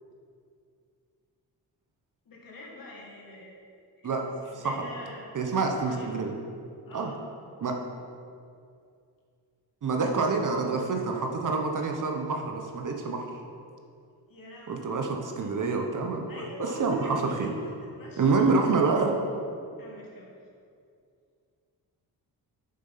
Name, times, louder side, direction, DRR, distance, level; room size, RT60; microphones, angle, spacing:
voice 1, 2.3-5.2 5.5-6.1 6.9-7.2 14.3-14.9 16.3-18.4 19.8-20.3, left 2 dB, 55° left, -3 dB, 2.5 m, -45 dB
voice 2, 5.3-6.3 6.9-7.1 7.6-7.8 9.8-13.3 14.7-16.4 16.8-17.5 18.2-19.1, right 4 dB, 50° right, 2 dB, 1.0 m, -27 dB
7.8 x 7.2 x 5.7 m, 2.4 s
wide cardioid pair, 130°, 41 cm